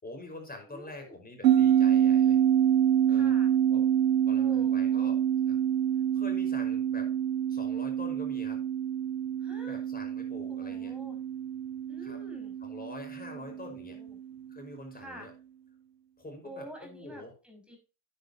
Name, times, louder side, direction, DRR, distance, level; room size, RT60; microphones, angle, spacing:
voice 1, 0.0-2.4 3.1-3.4 3.7-3.9 4.3-5.6 6.1-7.1 7.5-8.6 9.7-10.9 12.0-12.2 12.6-14.0 14.5-15.3 16.2-17.3, left 2 dB, 20° left, 4 dB, 5.4 m, -45 dB
voice 2, 0.7-1.2 3.1-3.5 4.3-5.2 9.4-9.8 10.5-11.2 11.9-12.5 13.3-14.2 14.9-15.3 16.4-17.8, right 1 dB, ahead, 1 dB, 5.5 m, -48 dB
sound 1, 1.4-14.2, right 10 dB, 90° right, 1.0 m, -27 dB
10.5 x 9.6 x 3.0 m, 0.31 s
hypercardioid pair, 75°, 48 cm